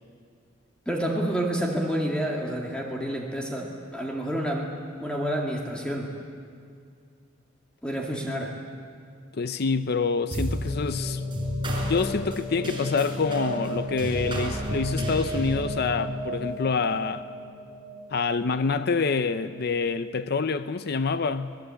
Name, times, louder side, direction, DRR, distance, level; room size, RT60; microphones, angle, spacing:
voice 1, 0.9-4.7 5.0-6.1 7.8-8.5, right 1 dB, 5° left, 2.0 m, -29 dB
voice 2, 9.3-11.2 11.8-17.3 18.1-21.6, left 4 dB, 55° left, 0.6 m, -26 dB
sound 1, 10.3-19.0, equal, 25° right, 5.0 m, -31 dB
24.0 x 20.0 x 8.4 m
head